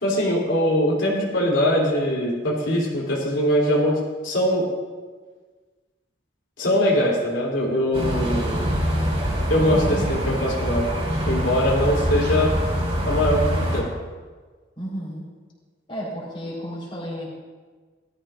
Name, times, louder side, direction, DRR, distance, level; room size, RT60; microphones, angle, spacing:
voice 1, 0.0-4.6 6.6-8.7 9.5-10.9 11.3-12.5 13.0-13.9, equal, 90° left, -5 dB, 3.1 m, -22 dB
sound 1, 7.9-13.8, equal, 35° right, 3.1 m, -24 dB
voice 2, 14.8-15.2 15.9-17.4, equal, 25° left, -5 dB, 4.1 m, -33 dB
18.5 x 13.5 x 2.5 m, 1.4 s
head